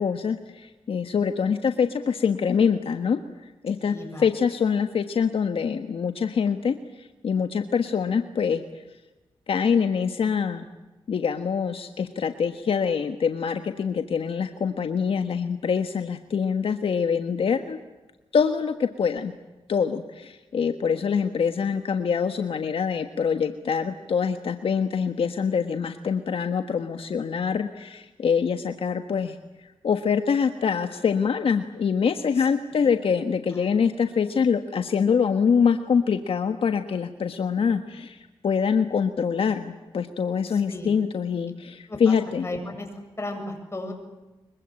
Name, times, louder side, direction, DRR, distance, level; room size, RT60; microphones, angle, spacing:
voice 1, 0.0-3.2 3.6-8.6 9.5-10.7 11.1-17.8 18.3-19.3 19.7-29.4 29.8-42.5, left 6 dB, 70° left, 8 dB, 1.4 m, -25 dB
voice 2, 3.9-4.3 32.4-32.5 32.8-32.9 33.5-33.6 40.5-40.9 41.9-42.2 42.4-42.9 43.2-43.9, left 2 dB, 25° left, 4 dB, 7.7 m, -35 dB
25.0 x 23.0 x 8.9 m, 1.1 s
cardioid pair, 90°, 10 cm